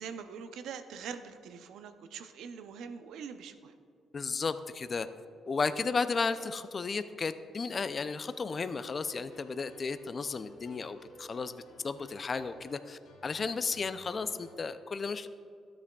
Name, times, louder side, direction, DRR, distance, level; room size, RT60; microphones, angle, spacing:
voice 1, 0.0-3.7 5.8-5.9, right 6 dB, 80° right, 9 dB, 0.5 m, -43 dB
voice 2, 4.1-5.1 5.5-11.6 11.8-15.3, left 4 dB, 40° left, 11 dB, 0.4 m, -34 dB
sound 1, 8.4-14.5, left 2 dB, 85° left, 1.3 m, -56 dB
13.0 x 8.5 x 2.3 m, 2.3 s
cardioid pair, 90°, 0 cm